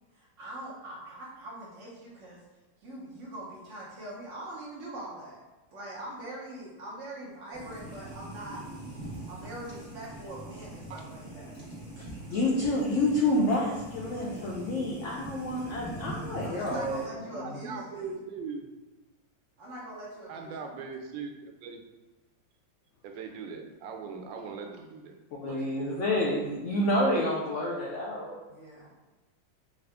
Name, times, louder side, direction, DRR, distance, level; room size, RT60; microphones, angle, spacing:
voice 1, 0.1-2.4 2.8-5.4 5.7-8.6 9.3-11.6 14.2-14.6 16.4-18.1 19.6-20.5 28.5-28.9, right 1 dB, 55° right, -5 dB, 0.9 m, -43 dB
sound 1, 7.5-17.1, right 1 dB, 25° right, 1.4 m, -42 dB
voice 2, 12.3-17.6 25.3-28.4, left 1 dB, 75° left, -4 dB, 0.7 m, -29 dB
voice 3, 17.4-18.7 20.3-21.8 23.0-25.1 25.5-26.0, right 5 dB, 85° right, 4 dB, 1.3 m, -40 dB
3.6 x 2.5 x 3.3 m, 1.1 s
omnidirectional pair, 1.9 m